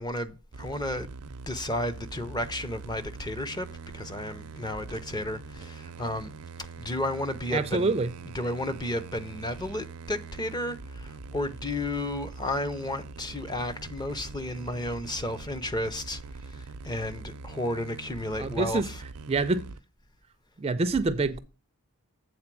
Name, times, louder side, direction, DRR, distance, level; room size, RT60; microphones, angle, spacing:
voice 1, 0.0-3.7 3.9-6.3 6.8-7.9 8.3-16.2 16.5-19.0, left 1 dB, 20° left, 0.5 m, -33 dB
sound 1, 0.5-19.8, right 4 dB, 85° right, 0.5 m, -43 dB
voice 2, 7.5-8.1 18.4-18.8 19.3-19.7 20.6-21.4, right 3 dB, 25° right, 0.4 m, -26 dB
7.9 x 3.8 x 5.9 m
head